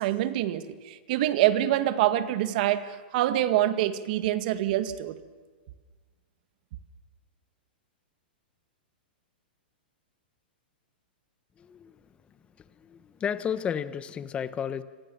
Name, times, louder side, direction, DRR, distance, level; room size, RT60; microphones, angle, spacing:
voice 1, 0.0-5.2, right 13 dB, 55° right, 2.0 m, -25 dB
voice 2, 11.6-12.0 12.8-14.8, left 8 dB, 20° left, 1.2 m, -32 dB
27.5 x 26.0 x 7.3 m
hypercardioid pair, 130°, 6 cm